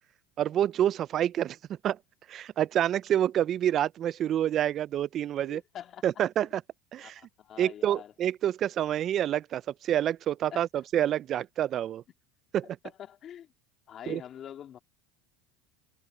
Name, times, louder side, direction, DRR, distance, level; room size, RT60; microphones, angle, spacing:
voice 1, 0.4-2.0 2.3-5.6 6.0-6.6 6.9-7.1 7.6-12.0 12.5-12.7 14.1-14.2, right 11 dB, 40° right, 0.4 m, -28 dB
voice 2, 5.4-6.1 7.0-8.1 10.5-10.6 12.8-13.5 13.9-14.8, left 10 dB, 40° left, 2.1 m, -44 dB
supercardioid pair, 115°, 0 cm